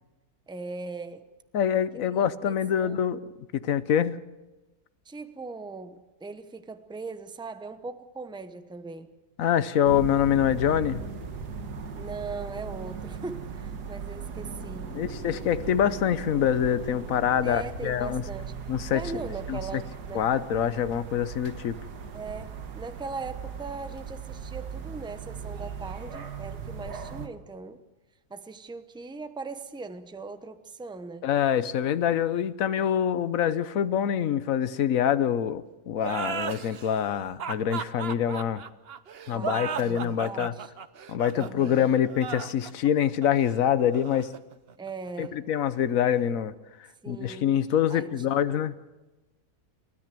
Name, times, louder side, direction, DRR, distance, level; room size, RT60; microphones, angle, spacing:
voice 1, 0.5-1.2 2.1-3.1 5.0-9.2 11.9-15.0 17.4-18.6 18.9-20.3 22.1-27.8 28.3-31.3 32.8-32.9 39.3-40.7 41.3-41.9 44.8-45.4 47.0-47.5 47.9-48.6, right 4 dB, 5° right, 10 dB, 0.6 m, -39 dB
voice 2, 1.5-3.2 3.5-4.2 9.4-11.0 14.9-18.2 18.7-19.0 19.5-19.8 20.1-21.8 31.2-38.6 39.3-40.5 41.1-44.3 45.2-46.5 47.1-48.7, left 9 dB, 60° left, 14 dB, 1.2 m, -25 dB
sound 1, 9.8-27.3, right 5 dB, 90° right, 2.0 m, -38 dB
sound 2, 36.0-45.3, right 7 dB, 45° right, 0.9 m, -36 dB
29.0 x 13.5 x 7.6 m, 1.1 s
omnidirectional pair, 1.7 m